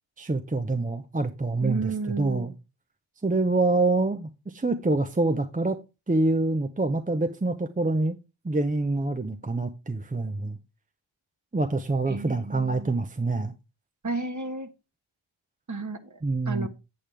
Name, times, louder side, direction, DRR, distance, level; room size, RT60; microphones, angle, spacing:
voice 1, 0.2-1.9 2.2-2.5 3.2-5.8 6.1-8.2 8.4-10.6 11.5-13.5 16.2-16.7, right 2 dB, 15° right, 0.7 m, -26 dB
voice 2, 1.6-2.5 12.1-12.9 14.0-14.7 15.7-16.2 16.5-16.7, right 3 dB, 35° right, 1.4 m, -32 dB
8.7 x 7.3 x 3.4 m
cardioid pair, 55°, 49 cm